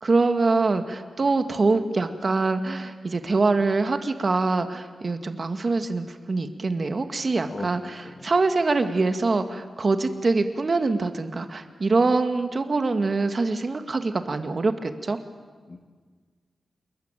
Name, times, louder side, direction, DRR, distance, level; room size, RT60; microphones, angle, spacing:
voice 1, 0.0-15.2, right 3 dB, 45° right, 7 dB, 1.9 m, -24 dB
voice 2, 7.5-7.7 8.0-8.3 15.7-15.8, left 3 dB, 40° left, 4 dB, 2.1 m, -37 dB
28.0 x 22.0 x 9.0 m, 1.5 s
wide cardioid pair, 95°, 0 cm